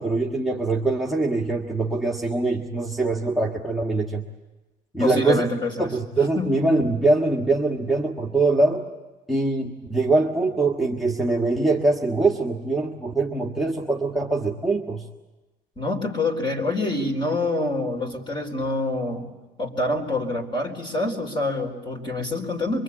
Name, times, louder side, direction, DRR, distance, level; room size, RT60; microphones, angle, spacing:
voice 1, 0.0-4.2 4.9-5.4 5.8-8.8 9.3-15.0, right 3 dB, ahead, -3 dB, 1.6 m, -23 dB
voice 2, 5.0-5.9 6.3-6.5 15.8-19.3 19.6-22.8, left 2 dB, 30° left, 3 dB, 4.4 m, -26 dB
24.0 x 23.5 x 8.7 m, 1.1 s
cardioid pair, 110°, 17 cm